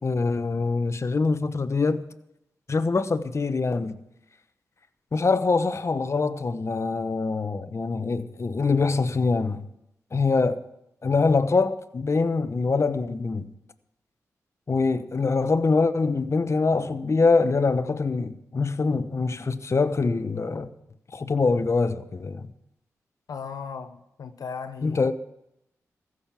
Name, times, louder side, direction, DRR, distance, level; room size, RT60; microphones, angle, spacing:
voice 1, 0.0-2.0 2.7-3.9 5.1-9.6 10.1-10.6 11.0-13.5 14.7-20.7 21.1-22.5 24.8-25.1, left 4 dB, 50° left, 1.0 m, -24 dB
voice 2, 23.3-25.0, left 5 dB, 75° left, 0.8 m, -37 dB
15.0 x 6.5 x 9.0 m
supercardioid pair, 40°, 6 cm